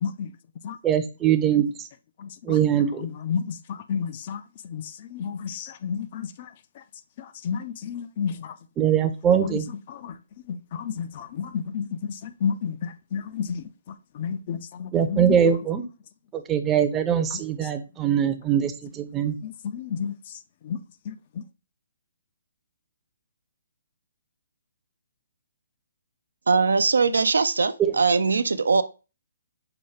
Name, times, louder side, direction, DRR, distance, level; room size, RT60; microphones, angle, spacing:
voice 1, 0.8-1.6 2.5-3.1 8.8-9.7 14.9-15.8 16.3-19.4 27.8-27.9, right 9 dB, 15° right, 0.5 m, -22 dB
voice 2, 3.0-4.4 4.7-4.8 5.1-6.3 7.4-8.5 10.0-10.1 10.5-12.1 12.4-13.6 14.2-15.4 17.3-17.4 19.4-20.1 20.7-20.8 21.1-21.2, left 7 dB, 45° left, 0.3 m, -30 dB
voice 3, 26.5-28.8, right 4 dB, 80° right, 0.3 m, -21 dB
5.7 x 2.3 x 3.2 m
hypercardioid pair, 140°, 0 cm